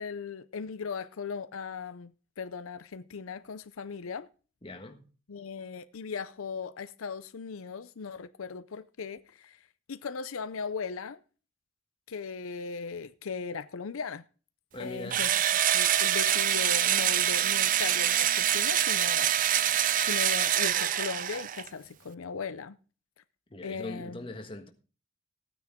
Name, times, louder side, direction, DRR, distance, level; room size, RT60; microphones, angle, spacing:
voice 1, 0.0-4.3 5.3-9.6 9.9-11.2 12.1-14.2 14.8-15.3 15.7-22.8 23.6-24.2, left 5 dB, 85° left, 0.6 m, -38 dB
voice 2, 4.6-5.1 14.7-15.2 23.5-24.7, left 1 dB, 25° left, 1.4 m, -41 dB
Engine / Drill, 15.1-21.7, right 11 dB, 40° right, 0.4 m, -25 dB
15.5 x 9.4 x 3.7 m
head